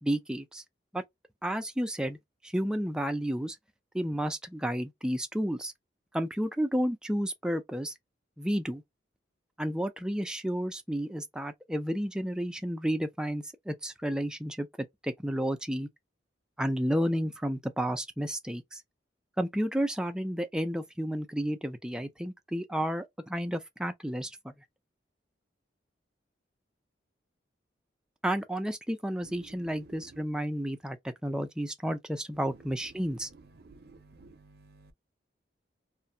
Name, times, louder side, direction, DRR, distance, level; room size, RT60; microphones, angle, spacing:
voice 1, 0.0-0.6 0.9-1.0 1.4-2.2 2.4-3.6 3.9-5.7 6.1-7.9 8.4-8.8 9.6-15.9 16.6-18.8 19.4-24.5 28.2-33.3, equal, 5° right, 0.3 m, -31 dB
voice 2, 29.8-30.2 33.6-34.9, right 3 dB, 55° right, 0.5 m, -54 dB
2.5 x 2.2 x 2.6 m
head